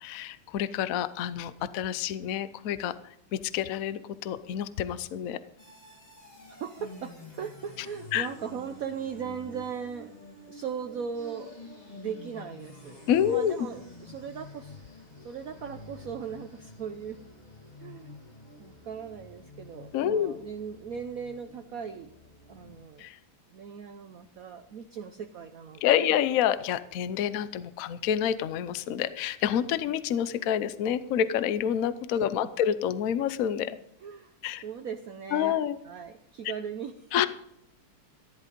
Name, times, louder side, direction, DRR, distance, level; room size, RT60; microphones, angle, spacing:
voice 1, 0.0-2.9 3.3-5.4 8.1-8.3 13.1-13.5 19.9-20.3 23.0-23.2 25.8-33.8 34.4-34.6 35.3-35.8 37.1-37.3, left 10 dB, 90° left, 14 dB, 0.7 m, -28 dB
sound 1, 5.6-22.9, left 2 dB, 20° left, 1.9 m, -49 dB
voice 2, 6.5-10.2 10.5-14.8 15.2-17.2 17.8-18.3 18.6-22.1 22.5-23.1 23.5-26.1 34.0-34.3 34.6-35.6 35.8-36.9, right 7 dB, 70° right, 6 dB, 0.8 m, -38 dB
14.0 x 11.0 x 5.2 m, 0.73 s
omnidirectional pair, 2.4 m